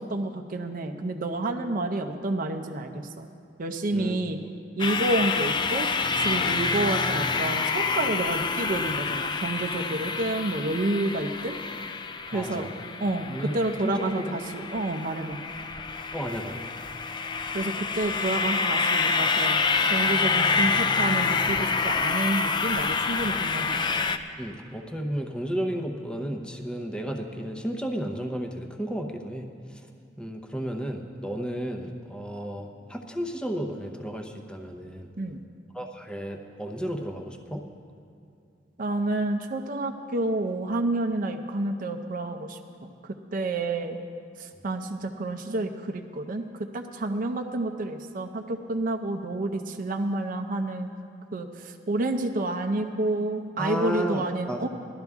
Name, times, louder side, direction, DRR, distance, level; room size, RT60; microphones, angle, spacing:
voice 1, 0.0-3.2 3.6-4.4 4.8-5.9 6.2-11.6 12.3-12.7 13.0-15.4 17.5-19.6 19.9-23.8 35.2-35.4 38.8-44.0 44.4-50.9 51.3-54.7, right 2 dB, 50° right, 4 dB, 0.6 m, -29 dB
voice 2, 3.9-4.5 12.3-12.7 13.2-13.5 13.8-14.3 14.7-14.8 16.1-16.8 24.4-29.4 29.7-29.8 30.2-35.1 35.7-37.6 53.6-54.2 54.5-54.6, equal, 5° left, 3 dB, 0.7 m, -33 dB
sound 1, 4.8-24.2, left 4 dB, 25° left, 0.4 m, -27 dB
17.0 x 12.0 x 3.6 m, 2.6 s
head